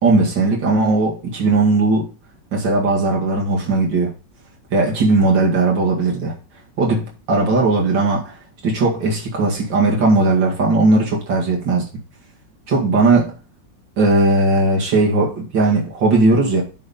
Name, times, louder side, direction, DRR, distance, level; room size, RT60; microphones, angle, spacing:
voice 1, 0.0-2.1 2.5-4.1 4.7-6.4 6.8-8.3 8.6-11.9 12.7-13.4 14.0-16.6, right 3 dB, 85° right, 2.8 m, -17 dB
9.5 x 4.3 x 5.3 m
omnidirectional pair, 1.9 m